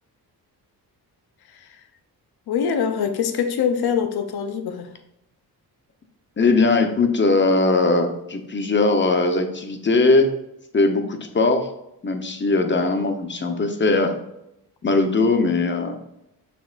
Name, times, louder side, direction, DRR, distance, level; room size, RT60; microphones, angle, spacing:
voice 1, 1.5-1.8 2.5-4.9, left 7 dB, 75° left, 1.0 m, -24 dB
voice 2, 6.4-10.3 10.7-11.7 12.0-14.2 14.8-16.0, left 3 dB, 30° left, 1.1 m, -20 dB
6.7 x 6.4 x 2.6 m
cardioid pair, 95°, 38 cm